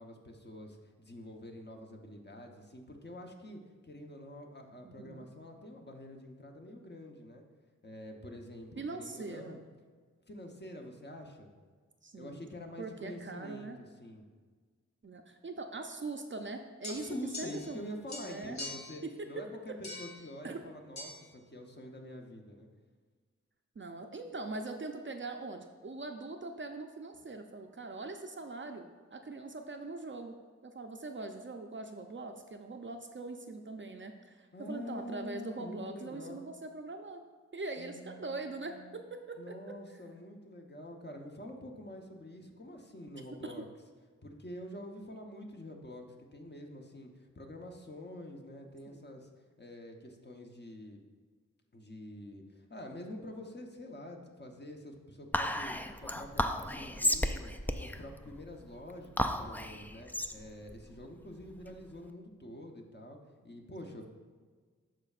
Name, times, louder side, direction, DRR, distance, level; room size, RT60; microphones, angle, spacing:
voice 1, 0.0-7.4 7.8-9.6 10.3-11.5 12.1-13.7 14.0-14.2 16.9-19.0 19.3-22.7 34.5-36.5 37.8-39.0 39.4-43.7 44.2-46.1 46.3-49.3 49.6-51.0 51.7-63.2 63.4-64.1, left 1 dB, 35° left, 2 dB, 0.9 m, -47 dB
voice 2, 4.8-5.3 8.8-9.6 12.0-12.4 12.8-13.8 15.0-17.8 18.2-18.6 19.0-19.5 20.4-20.6 23.8-30.3 30.6-37.2 37.5-39.5 43.4-43.5 48.9-49.2, right 3 dB, 40° right, 5 dB, 0.5 m, -42 dB
sound 1, 16.8-17.8 18.1-19.0 19.8-20.2 21.0-21.1, left 2 dB, 70° left, 1.2 m, -43 dB
Whispering, 55.3-62.0, left 1 dB, 5° left, 0.3 m, -34 dB
12.5 x 4.4 x 2.4 m, 1.5 s
wide cardioid pair, 70°, 29 cm